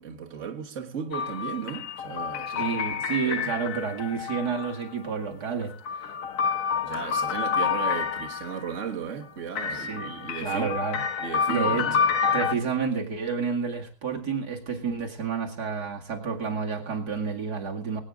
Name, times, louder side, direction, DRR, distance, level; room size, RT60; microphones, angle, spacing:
voice 1, 0.0-2.8 3.2-3.4 6.8-10.7 11.2-12.0, right 7 dB, 50° right, 1.8 m, -35 dB
sound 1, 1.1-4.9 5.6-8.7 9.6-12.5, left 6 dB, 60° left, 1.2 m, -28 dB
voice 2, 2.6-6.1 9.7-11.0 11.5-12.0 12.3-18.0, right 5 dB, 90° right, 2.9 m, -30 dB
23.0 x 9.2 x 3.7 m
omnidirectional pair, 1.7 m